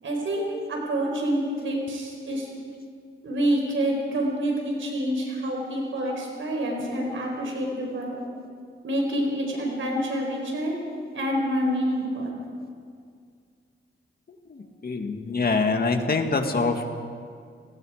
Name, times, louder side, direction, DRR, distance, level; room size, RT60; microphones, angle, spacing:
voice 1, 0.0-2.5 3.2-8.2 8.8-10.8 11.1-12.4, equal, 75° right, 0 dB, 4.9 m, -27 dB
voice 2, 14.5-16.8, left 4 dB, 50° left, 5 dB, 2.1 m, -25 dB
29.0 x 19.5 x 5.1 m, 2.2 s
wide cardioid pair, 105°, 21 cm